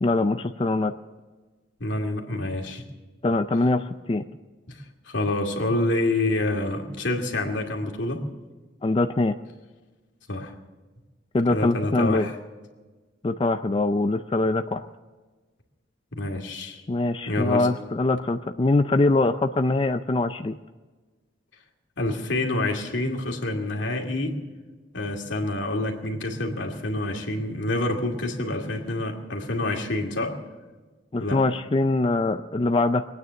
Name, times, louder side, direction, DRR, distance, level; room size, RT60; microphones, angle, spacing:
voice 1, 0.0-0.9 3.2-4.2 8.8-9.4 11.3-12.3 13.2-14.8 16.9-20.6 31.1-33.1, left 2 dB, 30° left, 8 dB, 0.4 m, -23 dB
voice 2, 1.8-2.8 4.7-8.2 10.3-10.5 11.5-12.4 16.1-16.8 17.3-17.7 22.0-24.4 24.9-30.4 31.2-31.4, left 2 dB, 80° left, 2 dB, 2.3 m, -27 dB
22.0 x 9.4 x 7.0 m, 1.3 s
head